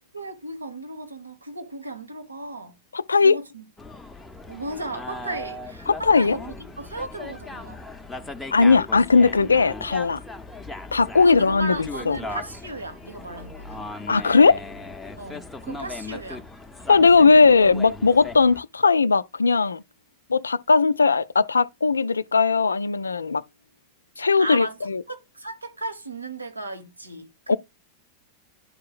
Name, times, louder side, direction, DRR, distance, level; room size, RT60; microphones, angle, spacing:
voice 1, 0.1-2.8 3.2-3.6 4.5-7.8 11.2-13.9 15.2-16.5 24.4-24.8 25.1-27.6, right 2 dB, 80° right, 1.2 m, -35 dB
voice 2, 2.9-3.4 5.9-6.4 8.5-10.2 10.9-11.7 12.1-12.2 14.1-14.6 16.9-19.8 20.3-23.4 24.2-25.0 27.5-27.6, left 4 dB, 75° left, 0.3 m, -18 dB
sound 1, 3.8-18.6, left 2 dB, 5° left, 0.7 m, -38 dB
11.0 x 4.6 x 2.4 m
figure-of-eight pair, 90°, 0 cm